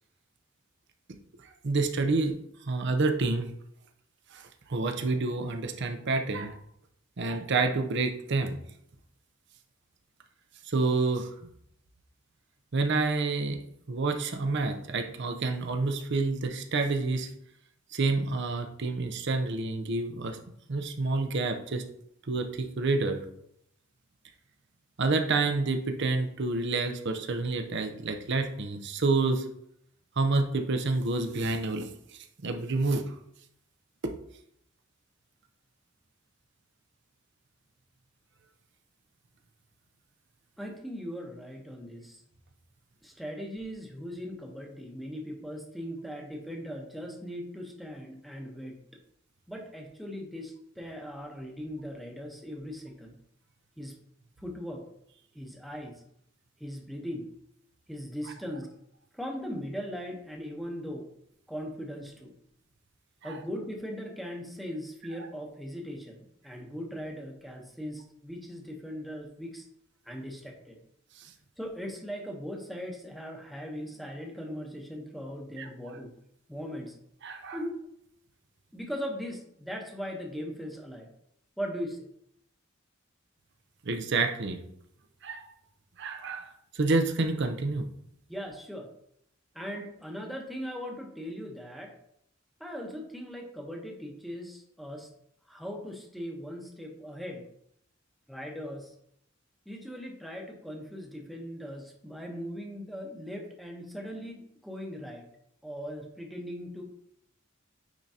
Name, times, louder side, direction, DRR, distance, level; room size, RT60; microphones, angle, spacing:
voice 1, 1.6-2.3 2.6-3.5 4.3-4.4 4.7-6.5 7.2-8.6 10.7-11.3 12.7-13.6 13.9-17.3 17.9-20.4 20.7-21.8 22.3-23.2 25.0-29.4 30.2-31.9 32.4-33.1 34.0-34.1 63.2-63.3 75.6-75.7 77.2-77.6 83.8-84.6 85.2-85.5 86.0-86.5 86.7-87.9, right 3 dB, 60° right, 6 dB, 0.7 m, -28 dB
voice 2, 40.6-42.2 43.0-48.8 49.5-53.1 53.8-54.0 54.4-54.8 55.3-56.0 56.6-57.3 57.9-58.7 59.1-61.1 61.5-62.3 63.2-69.7 70.0-70.8 71.6-76.1 76.5-77.0 77.5-77.8 78.7-81.1 81.6-82.1 88.3-88.9 89.5-91.9 92.6-95.1 95.5-97.5 98.3-98.9 99.7-105.3 105.6-106.8, equal, ahead, 1 dB, 1.0 m, -39 dB
9.0 x 3.8 x 2.8 m, 0.73 s
head